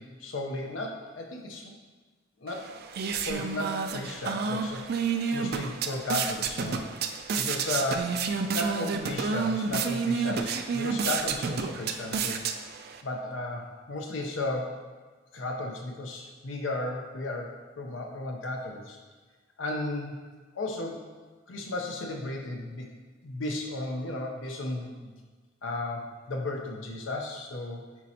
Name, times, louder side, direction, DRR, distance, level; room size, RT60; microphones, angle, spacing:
voice 1, 0.0-1.7 2.4-2.7 3.2-4.8 5.3-6.9 7.4-8.3 8.5-12.4 13.0-14.8 15.3-19.0 19.6-20.2 20.5-21.0 21.5-22.9 23.2-25.1 25.6-27.8, left 2 dB, 80° left, 1 dB, 0.7 m, -34 dB
sound 1, 2.5-13.0, right 5 dB, 55° right, 0.4 m, -30 dB
9.0 x 4.2 x 2.8 m, 1.4 s
head